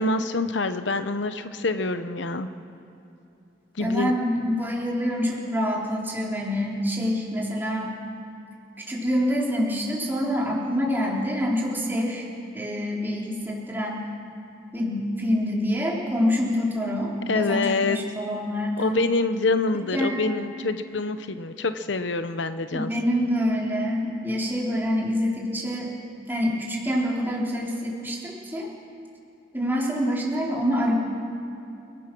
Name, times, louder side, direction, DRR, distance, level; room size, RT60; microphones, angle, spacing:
voice 1, 0.0-2.5 3.8-4.1 17.3-18.0 18.8-22.9, left 3 dB, 75° left, 10 dB, 0.9 m, -26 dB
voice 2, 3.8-7.9 8.8-12.3 12.5-14.0 14.7-19.0 19.9-20.2 22.7-25.9 26.3-28.7 29.5-30.9, equal, 10° right, -4 dB, 3.7 m, -26 dB
29.0 x 16.5 x 6.1 m, 2.8 s
head